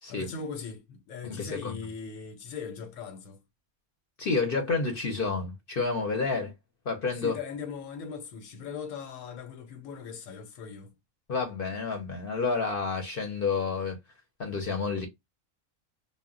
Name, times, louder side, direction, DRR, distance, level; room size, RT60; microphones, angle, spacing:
voice 1, 0.1-3.4 6.1-6.3 7.2-10.9, left 5 dB, 90° left, 1.1 m, -39 dB
voice 2, 1.2-1.8 4.2-6.5 6.9-7.4 11.3-14.0 14.4-15.1, left 4 dB, 55° left, 0.7 m, -29 dB
2.1 x 2.1 x 3.6 m
omnidirectional pair, 1.3 m